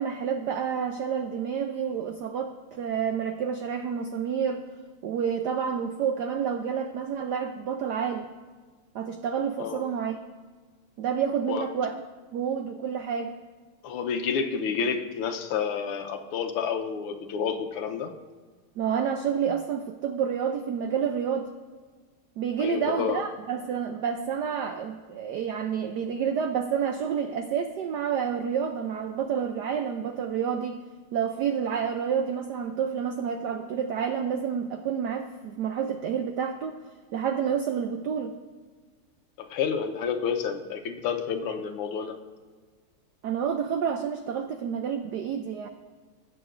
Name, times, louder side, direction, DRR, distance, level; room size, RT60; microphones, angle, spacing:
voice 1, 0.0-4.7 5.0-8.2 8.9-10.2 11.0-11.9 12.3-13.3 18.8-21.5 22.4-30.8 31.1-36.8 37.1-38.3 43.2-45.7, right 7 dB, 80° right, 6 dB, 0.9 m, -29 dB
voice 2, 13.8-18.1 22.6-23.2 39.4-42.2, left 6 dB, 80° left, 6 dB, 1.7 m, -29 dB
19.0 x 8.1 x 2.5 m, 1.5 s
omnidirectional pair, 2.4 m